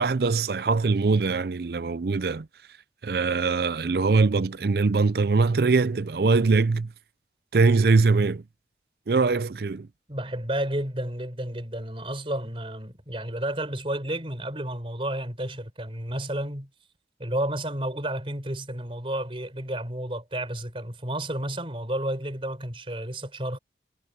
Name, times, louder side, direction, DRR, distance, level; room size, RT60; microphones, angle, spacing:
voice 1, 0.0-2.5 3.0-6.9 7.5-8.4 9.1-9.9, right 4 dB, 60° right, 0.5 m, -22 dB
voice 2, 10.1-16.7 17.2-23.6, right 1 dB, 30° right, 4.3 m, -31 dB
head